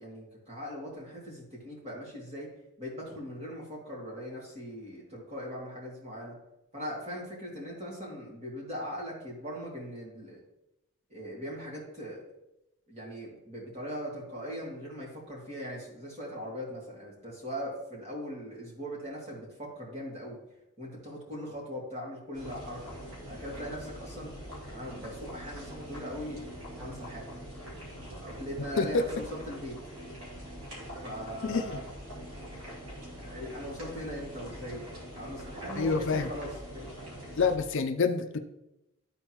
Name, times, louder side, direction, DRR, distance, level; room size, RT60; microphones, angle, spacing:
voice 1, 0.0-2.5 2.8-6.3 6.7-10.4 11.1-12.2 12.9-20.4 20.8-22.9 23.2-24.3 24.7-27.3 28.1-29.8 31.0-31.8 33.2-36.9, equal, 30° right, -4 dB, 2.4 m, -40 dB
sound 1, 22.3-37.6, equal, 70° right, 2.5 m, -43 dB
voice 2, 31.4-31.8 35.7-36.3 37.4-38.4, left 4 dB, 55° left, 7 dB, 0.5 m, -27 dB
13.0 x 4.3 x 3.0 m, 0.89 s
head